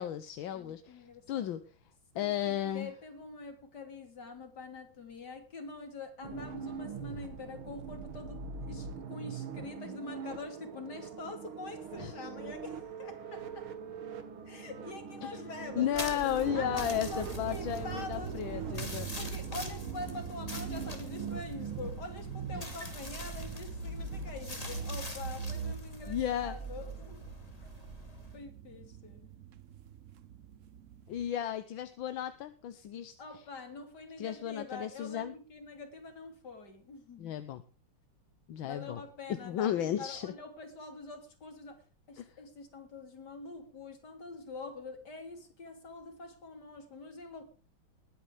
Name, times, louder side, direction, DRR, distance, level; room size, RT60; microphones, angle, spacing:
voice 1, 0.0-1.6 2.2-2.9 12.0-12.1 15.2-15.3 15.8-19.1 26.1-26.6 31.1-33.1 34.2-35.3 37.2-37.6 38.5-39.0 39.3-40.3 42.2-42.3, left 10 dB, 75° left, 11 dB, 1.6 m, -34 dB
voice 2, 0.5-1.5 2.1-13.7 14.4-18.7 19.2-27.3 27.6-27.7 28.3-29.3 33.2-37.3 38.6-47.4, left 3 dB, 50° left, 6 dB, 3.4 m, -45 dB
sound 1, 6.2-25.7, right 5 dB, 90° right, 2.6 m, -42 dB
sound 2, 15.9-28.4, left 1 dB, 20° left, 2.6 m, -44 dB
sound 3, 16.4-31.3, right 10 dB, 70° right, 0.7 m, -46 dB
21.0 x 9.9 x 3.4 m, 0.35 s
omnidirectional pair, 2.2 m